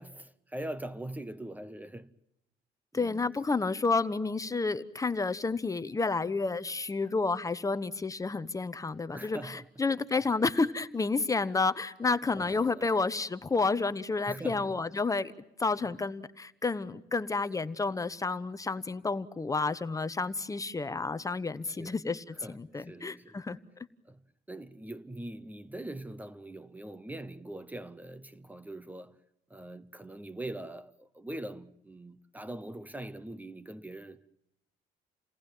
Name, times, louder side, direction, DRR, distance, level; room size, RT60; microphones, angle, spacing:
voice 1, 0.0-2.1 2.9-3.2 9.1-9.7 12.3-12.9 14.3-14.8 21.7-22.0 22.4-23.4 24.0-24.2 24.5-29.2 29.5-34.2, right 1 dB, 10° right, 0.9 m, -42 dB
voice 2, 2.9-15.3 15.6-23.6, left 3 dB, 20° left, 1.0 m, -30 dB
29.5 x 19.0 x 9.1 m
cardioid pair, 110°, 17 cm